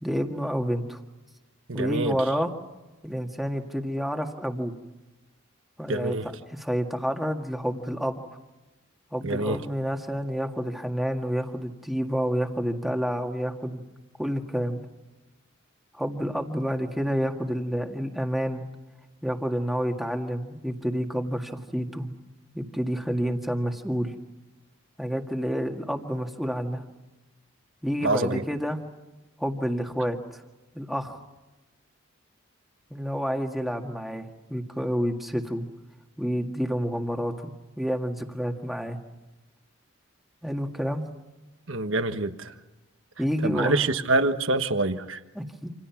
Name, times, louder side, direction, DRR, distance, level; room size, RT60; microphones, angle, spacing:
voice 1, 0.0-1.0 1.7-2.5 3.0-4.7 5.8-6.2 6.5-8.2 9.1-13.8 14.2-14.8 15.9-18.6 19.2-22.1 22.5-24.1 25.0-26.8 27.8-28.8 29.4-30.4 30.7-31.2 32.9-35.7 36.2-39.0 40.4-41.0 43.2-43.8 45.4-45.7, equal, ahead, 3 dB, 1.9 m, -29 dB
voice 2, 1.7-2.2 5.9-6.3 9.2-9.6 28.0-28.4 41.7-42.5 43.4-45.2, right 2 dB, 70° right, 9 dB, 1.4 m, -26 dB
28.0 x 27.5 x 6.0 m, 1.1 s
head